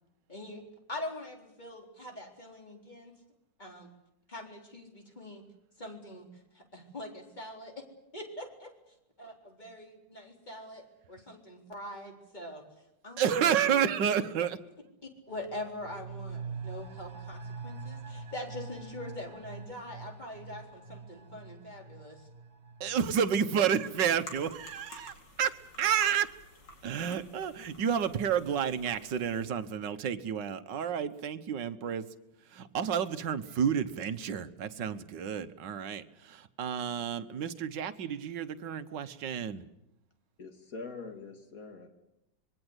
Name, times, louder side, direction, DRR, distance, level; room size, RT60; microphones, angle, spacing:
voice 1, 0.3-0.6 0.9-3.2 3.6-3.9 4.3-5.4 5.8-7.9 8.1-8.7 9.2-12.6 13.0-13.9 15.3-22.3, left 1 dB, 20° left, 3 dB, 4.0 m, -43 dB
voice 2, 13.2-14.6 22.8-26.3 26.8-32.1 32.5-39.6, right 8 dB, 70° right, 11 dB, 1.7 m, -30 dB
sound 1, 15.3-24.7 25.0-25.1, right 5 dB, 40° right, 1.6 m, -45 dB
sound 2, 23.8-29.5, left 2 dB, 65° left, 4.9 m, -51 dB
voice 3, 40.4-41.9, left 4 dB, 45° left, 5 dB, 3.1 m, -43 dB
26.5 x 22.0 x 8.1 m, 0.88 s
omnidirectional pair, 2.1 m